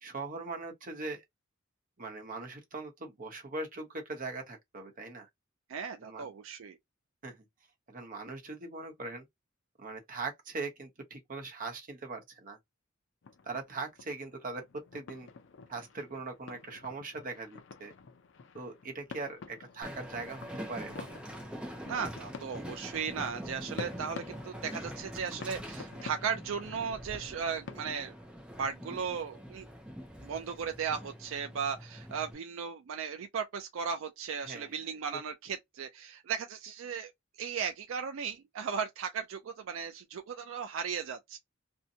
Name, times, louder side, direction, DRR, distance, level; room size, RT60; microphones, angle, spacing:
voice 1, 0.0-1.2 2.0-5.3 6.0-6.3 7.2-7.4 7.9-9.3 9.8-12.6 13.4-15.3 15.7-17.9 18.5-21.2 34.4-35.0, right 3 dB, 40° right, 0.9 m, -41 dB
voice 2, 5.7-6.8 21.9-28.1 28.6-29.7 30.2-37.1 37.4-41.4, right 6 dB, 70° right, 0.4 m, -36 dB
sound 1, 13.2-27.9, left 4 dB, 60° left, 0.5 m, -49 dB
Train, 19.8-32.3, equal, 5° right, 0.5 m, -44 dB
2.7 x 2.2 x 2.7 m
head